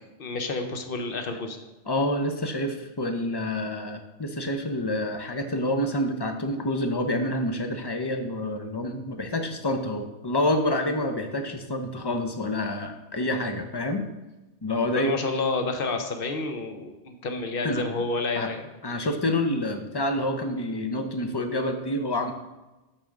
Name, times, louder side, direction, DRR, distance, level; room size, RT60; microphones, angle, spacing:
voice 1, 0.2-1.6 14.9-18.7, left 3 dB, 50° left, 5 dB, 1.0 m, -29 dB
voice 2, 1.9-14.0 14.6-15.1 17.6-17.8 18.4-18.5 18.8-22.3, left 1 dB, 30° left, 6 dB, 0.5 m, -28 dB
8.7 x 3.5 x 6.3 m, 1.1 s
omnidirectional pair, 1.3 m